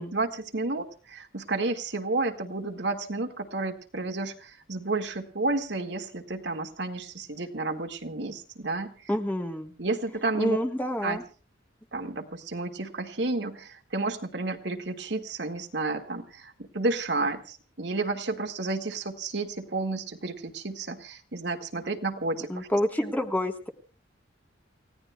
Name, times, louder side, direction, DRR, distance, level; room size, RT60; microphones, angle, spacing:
voice 1, 0.0-9.1 9.8-10.6 11.0-11.2 11.9-22.7, right 3 dB, 60° right, 4 dB, 1.9 m, -31 dB
voice 2, 9.1-9.7 10.4-11.2 22.5-23.7, left 1 dB, 10° left, 5 dB, 1.3 m, -28 dB
29.5 x 16.5 x 2.3 m, 0.38 s
head